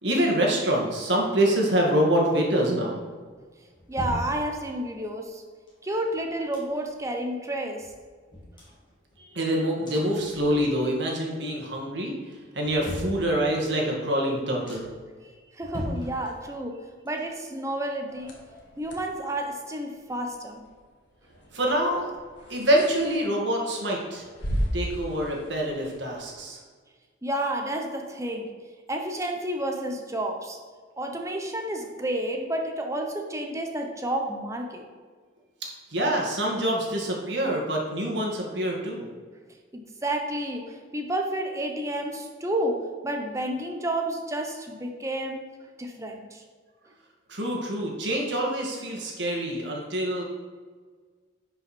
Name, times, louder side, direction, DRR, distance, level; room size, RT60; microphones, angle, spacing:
voice 1, 0.0-3.0 9.2-12.1 12.5-14.8 21.5-22.1 22.5-24.3 24.7-26.6 35.9-39.1 47.3-50.2, right 1 dB, 60° right, -1 dB, 2.1 m, -25 dB
sound 1, 3.2-5.0 5.7-7.1 7.4-7.5 7.8-9.4 9.8-11.0 11.3-11.8 12.3-13.8 14.2-14.3 14.6-15.1 15.5-16.8 17.0-18.9 19.2-19.3, left 1 dB, 25° left, 2.5 m, -40 dB
voice 2, 3.9-5.4 5.8-7.9 15.5-18.4 18.8-20.6 27.2-28.6 28.9-30.6 31.0-34.9 39.7-45.5 45.8-46.4, right 1 dB, 15° right, 3 dB, 0.8 m, -30 dB
sound 2, 18.1-26.4, equal, 70° left, 1.8 m, -37 dB
11.0 x 5.6 x 4.4 m, 1.5 s
head